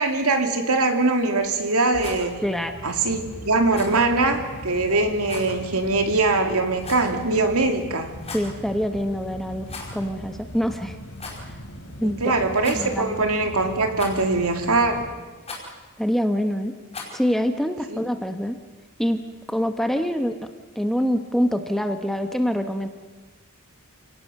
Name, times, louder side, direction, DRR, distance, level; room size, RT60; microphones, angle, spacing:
voice 1, 0.0-2.4 2.8-3.2 3.4-8.1 12.0-15.1 17.9-18.0, right 3 dB, 75° right, 5 dB, 2.7 m, -22 dB
sound 1, 1.4-15.1, left 1 dB, 60° left, 3.2 m, -40 dB
Rattle, 1.9-2.3 3.7-4.0 5.2-5.5 6.8-7.2 8.1-8.5 9.6-10.1 10.3-10.4 11.1-11.4 12.6-13.1 14.0-14.4 15.4-15.7 16.9-17.2, left 3 dB, 30° left, 4.9 m, -37 dB
voice 2, 2.4-2.7 8.3-11.0 12.0-13.1 16.0-16.7 17.1-18.6 19.0-20.4 20.7-22.9, equal, ahead, 6 dB, 1.2 m, -25 dB
28.5 x 18.0 x 6.8 m, 1.3 s
head